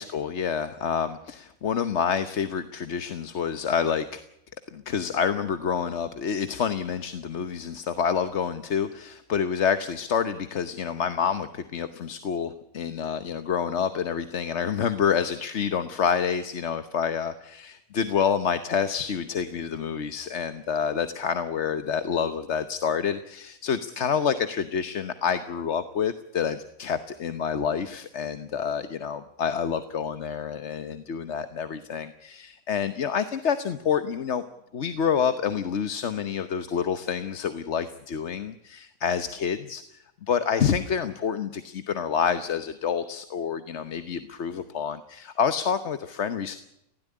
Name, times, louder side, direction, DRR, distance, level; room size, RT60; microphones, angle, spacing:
voice 1, 0.0-4.2 4.7-34.4 34.7-46.6, left 7 dB, 55° left, 11 dB, 1.3 m, -28 dB
19.5 x 16.5 x 9.9 m, 0.81 s
omnidirectional pair, 1.5 m